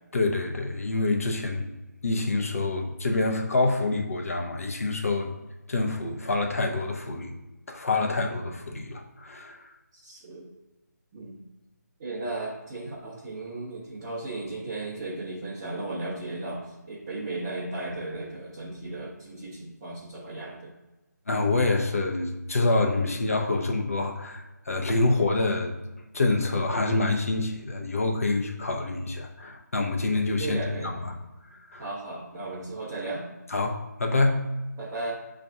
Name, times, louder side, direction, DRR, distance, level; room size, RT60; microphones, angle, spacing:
voice 1, 0.1-1.7 2.0-5.3 5.7-7.3 7.7-9.6 21.3-25.7 26.1-30.6 30.8-31.1 31.5-31.9 33.5-34.4, left 2 dB, 50° left, 2 dB, 0.7 m, -26 dB
voice 2, 9.9-10.5 11.1-11.4 12.0-20.7 30.4-31.1 31.8-33.3 34.8-35.1, right 2 dB, 15° right, -8 dB, 0.6 m, -35 dB
7.5 x 2.5 x 2.3 m, 1.1 s
figure-of-eight pair, 155°, 10 cm